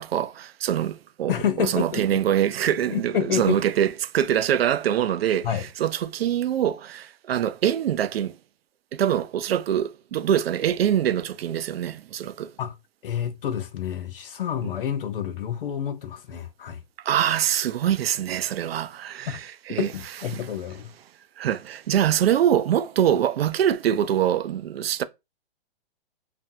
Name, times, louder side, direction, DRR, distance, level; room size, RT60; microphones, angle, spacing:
voice 1, 0.0-1.3 1.6-5.5 5.8-8.3 8.9-12.5 17.0-19.4 19.7-19.9 21.4-25.0, right 10 dB, 85° right, 0.4 m, -24 dB
voice 2, 1.3-2.2 2.9-3.6 5.4-5.7 12.6-12.7 13.0-16.8 19.3-19.4 19.8-20.9, left 9 dB, 70° left, 0.6 m, -28 dB
2.5 x 2.3 x 2.6 m
hypercardioid pair, 165°, 29 cm